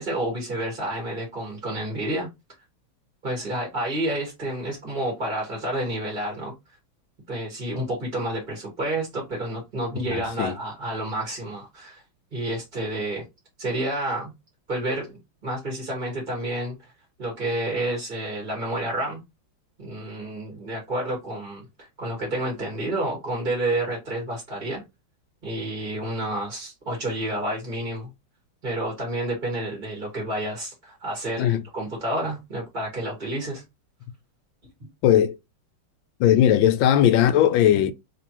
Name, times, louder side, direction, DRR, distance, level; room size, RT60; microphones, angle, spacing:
voice 1, 0.0-2.3 3.2-6.5 7.3-12.0 12.3-13.2 13.6-14.3 14.7-16.9 17.2-19.2 19.8-24.8 25.4-28.1 28.6-33.6, right 1 dB, 25° right, 1.6 m, -29 dB
voice 2, 10.1-10.5 31.4-31.6 35.0-35.4 36.2-37.9, left 10 dB, 75° left, 1.2 m, -18 dB
3.4 x 3.3 x 2.9 m
omnidirectional pair, 2.3 m